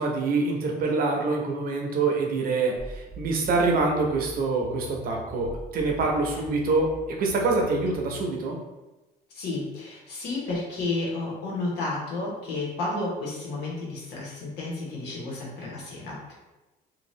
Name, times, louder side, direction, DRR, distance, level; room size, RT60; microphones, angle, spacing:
voice 1, 0.0-6.9 7.2-8.6, right 3 dB, 60° right, 0 dB, 0.7 m, -25 dB
sound 1, 2.8-8.2, left 1 dB, 40° left, 1.0 m, -41 dB
voice 2, 9.3-16.3, left 2 dB, 85° left, -4 dB, 1.1 m, -32 dB
2.7 x 2.3 x 3.1 m, 1.1 s
cardioid pair, 110°, 17 cm